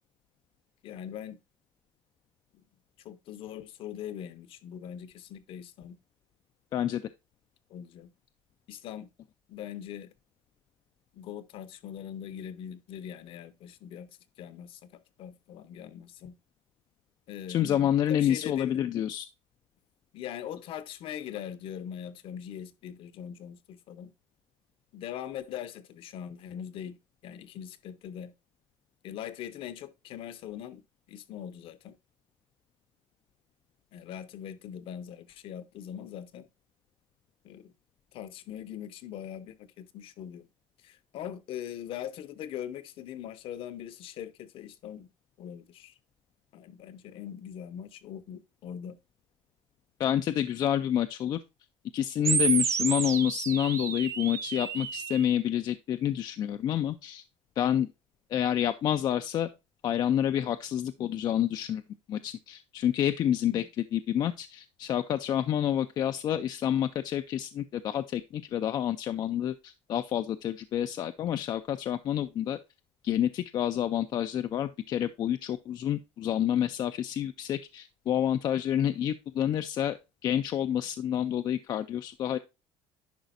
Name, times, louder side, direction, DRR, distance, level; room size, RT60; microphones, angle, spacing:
voice 1, 0.8-1.4 3.0-6.0 7.7-8.1 8.7-9.1 9.5-10.1 11.1-14.1 14.4-16.4 17.3-17.6 18.1-18.8 20.1-24.1 24.9-28.3 29.0-30.8 31.1-32.0 33.9-36.5 37.4-37.7 38.1-40.5 40.8-45.1 45.4-45.9 46.5-49.0 61.0-61.3 63.5-63.7, left 9 dB, 55° left, 0.8 m, -41 dB
voice 2, 17.5-19.3 50.0-51.4 51.9-57.2 57.6-57.9 58.3-59.5 59.8-61.8 62.1-63.6 63.9-72.6 73.0-80.0 80.2-82.4, left 10 dB, 40° left, 0.3 m, -28 dB
sound 1, 52.2-55.2, right 6 dB, 25° right, 0.6 m, -30 dB
10.5 x 5.0 x 2.5 m
cardioid pair, 165°, 11 cm